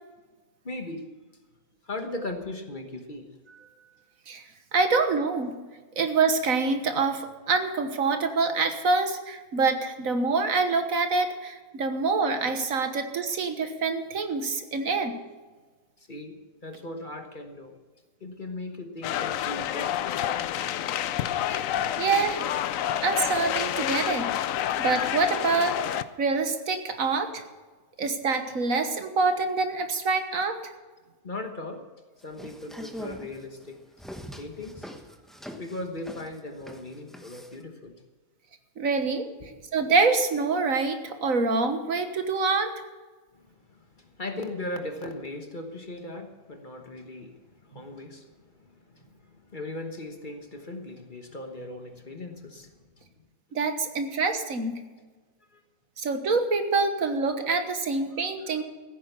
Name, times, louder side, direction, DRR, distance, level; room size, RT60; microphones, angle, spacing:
voice 1, 0.6-1.1 1.8-3.3 16.1-17.7 18.2-20.6 31.2-31.8 32.2-33.8 34.4-37.9 39.4-39.6 43.3-48.3 48.6-53.0 55.5-55.6, left 2 dB, 35° left, 5 dB, 1.3 m, -38 dB
voice 2, 4.7-5.5 6.0-15.1 21.5-21.7 22.0-22.4 23.0-24.3 24.8-27.4 28.0-30.6 38.8-39.2 39.7-42.7 53.5-54.8 56.0-58.6, right 4 dB, 65° right, 7 dB, 1.7 m, -26 dB
sound 1, 19.0-26.0, left 11 dB, 70° left, 1.0 m, -29 dB
sound 2, 32.2-37.6, equal, ahead, 1.0 m, -43 dB
15.5 x 9.4 x 6.8 m, 1.3 s
omnidirectional pair, 1.5 m